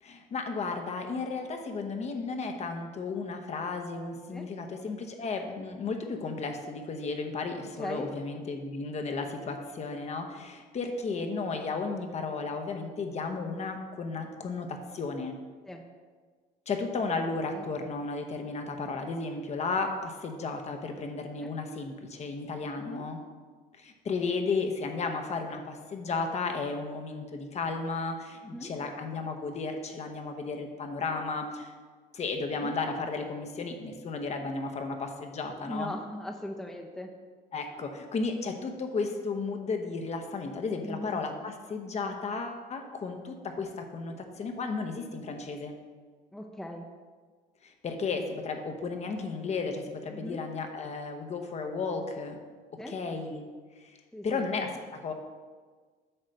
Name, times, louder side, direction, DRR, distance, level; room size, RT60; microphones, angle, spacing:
voice 1, 0.0-15.4 16.7-23.2 23.8-31.7 32.1-35.9 37.5-45.8 47.6-52.4 52.9-53.4 53.8-53.9 54.2-55.1, left 4 dB, 40° left, 5 dB, 0.9 m, -34 dB
voice 2, 7.7-8.1 15.6-15.8 17.5-17.7 21.4-21.5 22.8-23.1 28.4-28.7 32.6-32.8 35.6-37.1 40.8-41.2 46.3-46.9 50.1-50.4 52.8-53.0 54.1-54.5, left 1 dB, 5° left, 2 dB, 0.6 m, -39 dB
8.7 x 3.2 x 6.4 m, 1.5 s
cardioid pair, 110°, 17 cm